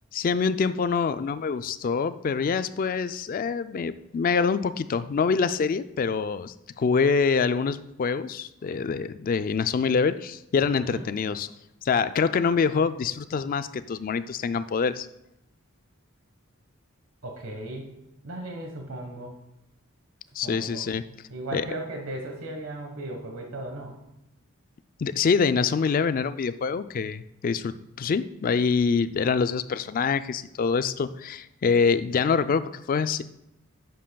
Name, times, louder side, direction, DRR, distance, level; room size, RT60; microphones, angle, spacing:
voice 1, 0.1-11.5 11.8-15.1 20.4-21.0 21.5-21.7 25.0-33.2, left 5 dB, 40° left, 12 dB, 0.3 m, -25 dB
voice 2, 17.2-17.9 18.2-19.3 20.4-20.8 21.3-24.0, right 1 dB, 75° right, 2 dB, 1.2 m, -36 dB
11.0 x 7.5 x 2.3 m, 0.85 s
head